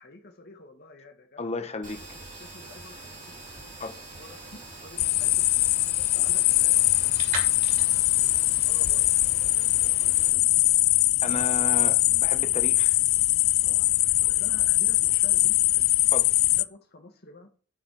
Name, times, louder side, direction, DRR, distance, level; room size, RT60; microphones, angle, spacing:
voice 1, 0.0-1.5 2.1-5.5 5.9-8.2 8.6-9.1 9.4-11.7 13.6-16.3 16.6-17.5, left 2 dB, 50° left, 1.6 m, -50 dB
voice 2, 1.4-2.0 3.8-4.0 11.2-13.0 16.1-16.3, left 3 dB, 35° left, 1.1 m, -33 dB
sound 1, 1.8-10.3, right 2 dB, 40° right, 2.9 m, -42 dB
sound 2, 5.0-16.6, left 18 dB, 80° left, 0.4 m, -22 dB
9.6 x 6.3 x 4.8 m
head